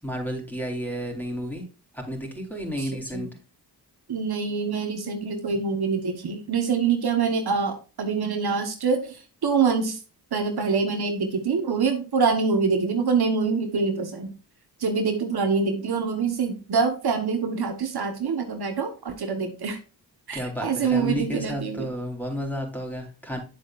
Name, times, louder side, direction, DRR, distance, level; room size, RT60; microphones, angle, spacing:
voice 1, 0.0-1.6 1.9-3.3 20.3-23.4, equal, 5° left, 0 dB, 4.0 m, -31 dB
voice 2, 2.8-3.3 4.1-10.0 10.3-14.3 14.8-19.8 20.3-21.9, right 5 dB, 65° right, 5 dB, 1.4 m, -25 dB
8.9 x 7.5 x 2.6 m, 0.33 s
cardioid pair, 55°, 41 cm